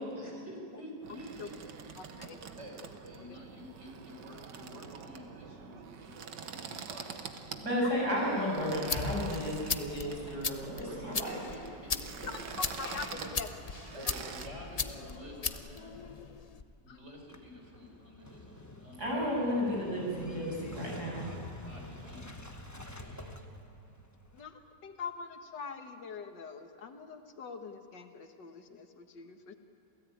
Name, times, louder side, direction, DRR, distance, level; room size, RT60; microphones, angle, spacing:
voice 1, 0.1-8.1 10.9-12.3 13.1-13.4 13.9-16.0 16.8-19.5 21.2-22.5 22.7-23.5, equal, 40° right, 1 dB, 5.0 m, -50 dB
sound 1, 1.0-14.5, right 6 dB, 80° right, 1.9 m, -46 dB
voice 2, 2.0-2.4 3.3-3.4 7.8-7.9 11.9-12.4 12.8-13.5 14.0-14.1 16.9-17.0 24.3-29.5, left 5 dB, 80° left, 6 dB, 2.1 m, -44 dB
voice 3, 7.6-11.4 19.0-21.3, equal, 60° right, -3 dB, 8.2 m, -33 dB
sound 2, 8.6-16.6, left 5 dB, 50° left, 0.4 m, -38 dB
Motorcycle / Engine starting, 17.2-24.4, left 1 dB, 10° left, 1.0 m, -47 dB
28.0 x 17.5 x 9.3 m, 2.5 s
omnidirectional pair, 1.9 m